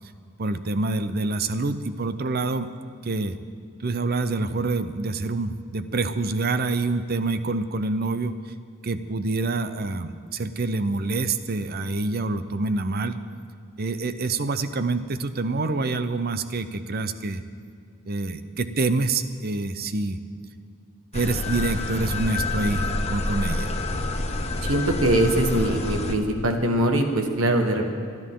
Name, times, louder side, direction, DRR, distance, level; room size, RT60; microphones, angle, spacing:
voice 1, 0.4-2.7 3.0-3.4 3.8-8.3 8.8-13.2 13.8-17.4 18.1-20.2 21.1-23.7, right 3 dB, 45° right, 12 dB, 0.7 m, -26 dB
sound 1, 21.1-26.2, left 2 dB, 30° left, 0.9 m, -28 dB
voice 2, 24.6-27.9, right 1 dB, 70° right, 4 dB, 1.6 m, -22 dB
29.0 x 10.5 x 3.8 m, 2.3 s
head